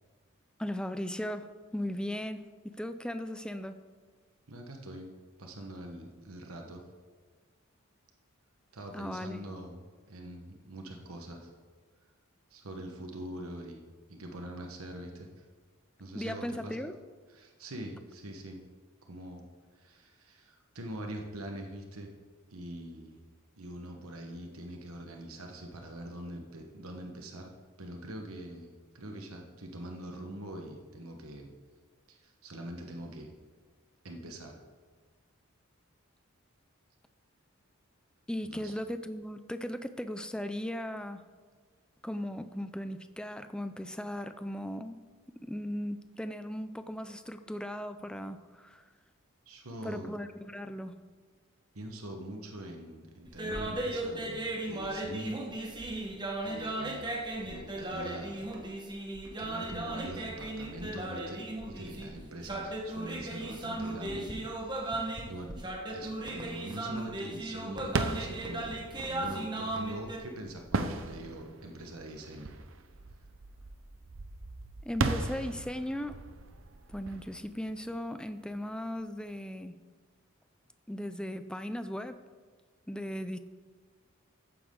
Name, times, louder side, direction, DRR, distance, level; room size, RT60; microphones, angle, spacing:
voice 1, 0.6-3.8 8.9-9.5 16.1-17.0 38.3-41.2 42.0-45.0 45.4-48.8 49.8-50.9 74.8-76.2 76.9-79.8 80.9-82.2 82.9-83.4, equal, 5° left, 10 dB, 0.4 m, -37 dB
voice 2, 4.5-5.1 5.4-6.8 8.7-11.5 12.5-15.4 16.0-16.8 17.3-18.6 19.0-19.4 19.7-22.1 22.5-23.2 23.6-27.5 27.8-31.5 32.1-33.3 34.0-34.6 38.4-38.7 49.5-50.2 51.7-55.4 56.4-58.5 59.4-65.5 65.9-72.5, right 1 dB, 90° right, 2 dB, 1.3 m, -43 dB
sound 1, 53.3-70.2, right 1 dB, 20° right, 1.3 m, -36 dB
sound 2, 67.8-78.4, right 3 dB, 65° right, 0.8 m, -37 dB
14.5 x 9.5 x 3.8 m, 1.5 s
head